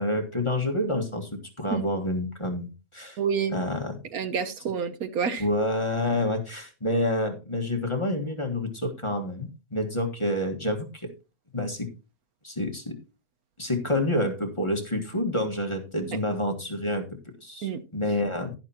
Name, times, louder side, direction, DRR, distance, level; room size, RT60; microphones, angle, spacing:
voice 1, 0.0-3.2 3.5-4.0 5.4-11.1 11.5-11.9 12.4-13.0 13.6-17.1 17.4-18.5, left 1 dB, 20° left, 1.6 m, -28 dB
voice 2, 3.2-3.6 4.1-5.4 17.6-17.8, right 6 dB, 70° right, 1.3 m, -28 dB
11.5 x 11.0 x 2.9 m
omnidirectional pair, 1.6 m